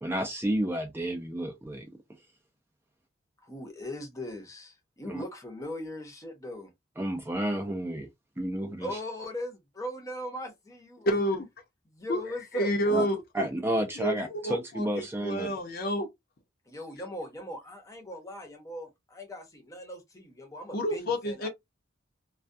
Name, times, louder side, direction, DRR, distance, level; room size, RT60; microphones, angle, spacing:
voice 1, 0.0-1.9 5.1-5.2 7.0-8.1 8.4-8.9 12.9-13.0 13.3-15.5, right 1 dB, 10° right, 0.4 m, -31 dB
voice 2, 3.4-6.7 8.8-11.3 11.8-13.1 16.7-21.5, left 1 dB, 15° left, 0.7 m, -39 dB
voice 3, 11.1-11.5 12.1-12.2 12.5-13.5 14.0-16.1 20.7-21.5, equal, 50° left, 0.7 m, -29 dB
2.3 x 2.2 x 2.6 m
head